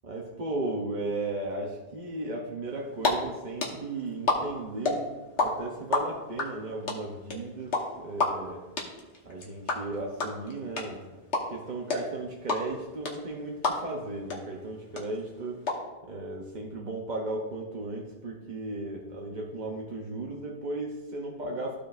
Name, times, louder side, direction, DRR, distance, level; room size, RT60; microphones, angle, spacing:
voice 1, 0.0-5.0 5.4-8.6 9.2-11.0 11.5-15.6 16.0-21.8, right 2 dB, 45° right, 0 dB, 0.9 m, -35 dB
sound 1, 2.7-3.1 3.4-5.5 5.7-14.0 14.3-14.4 14.7-15.7, left 3 dB, 90° left, 1.6 m, -28 dB
14.0 x 5.0 x 2.5 m, 1.1 s
omnidirectional pair, 1.1 m